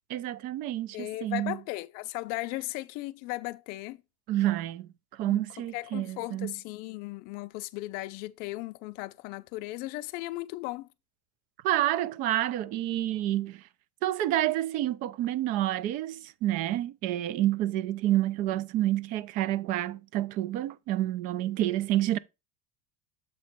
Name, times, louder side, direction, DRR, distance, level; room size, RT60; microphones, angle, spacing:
voice 1, 0.1-1.6 4.3-4.9 5.2-6.5 11.6-13.6 14.0-22.2, right 14 dB, 45° right, 0.4 m, -29 dB
voice 2, 0.9-4.0 5.3-5.4 5.7-10.9, left 19 dB, 50° left, 0.5 m, -36 dB
7.4 x 3.0 x 5.8 m
supercardioid pair, 155°, 20 cm